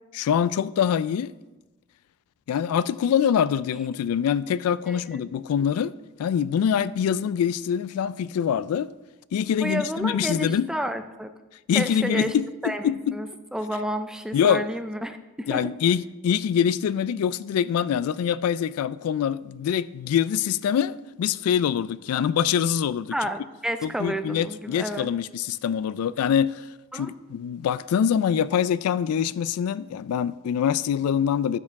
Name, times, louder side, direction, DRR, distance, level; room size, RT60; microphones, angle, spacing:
voice 1, 0.1-1.3 2.5-5.9 6.2-8.9 9.3-10.7 11.7-13.2 14.3-14.6 15.5-23.1 23.8-26.6 26.9-31.6, left 8 dB, 85° left, 0.3 m, -24 dB
voice 2, 4.9-5.2 9.6-11.3 11.7-12.3 12.6-15.6 23.1-25.1 26.9-27.1, equal, 5° right, 0.4 m, -30 dB
11.5 x 6.7 x 3.6 m
head